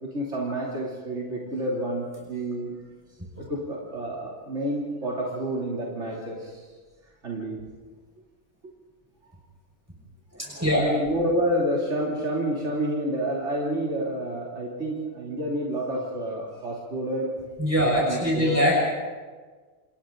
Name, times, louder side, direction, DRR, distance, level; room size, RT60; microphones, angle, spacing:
voice 1, 0.0-2.7 3.4-6.7 7.2-7.6 10.7-17.3 18.1-18.6, right 1 dB, 85° right, -4 dB, 3.5 m, -29 dB
voice 2, 10.3-10.8 17.6-18.8, equal, 15° right, -4 dB, 5.8 m, -23 dB
30.0 x 28.0 x 3.9 m, 1.5 s
omnidirectional pair, 1.2 m